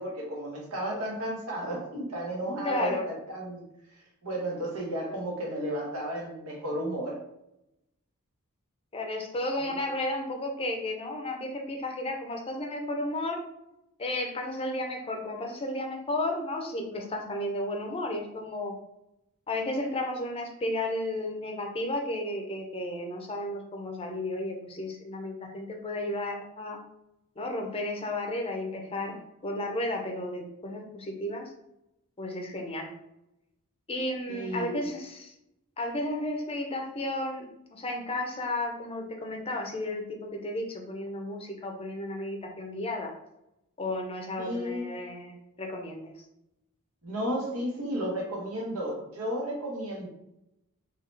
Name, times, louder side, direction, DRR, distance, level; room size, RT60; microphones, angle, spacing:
voice 1, 0.0-3.6 4.2-7.2 9.7-9.8 34.3-34.8 44.4-44.9 47.0-50.1, right 1 dB, 80° right, -2 dB, 1.3 m, -33 dB
voice 2, 2.6-3.1 8.9-13.4 14.0-18.7 19.5-26.8 27.4-29.2 29.4-31.5 32.2-32.9 33.9-35.3 35.8-43.2 43.8-46.1, left 1 dB, 25° left, 2 dB, 0.6 m, -33 dB
3.7 x 2.9 x 3.3 m, 0.86 s
head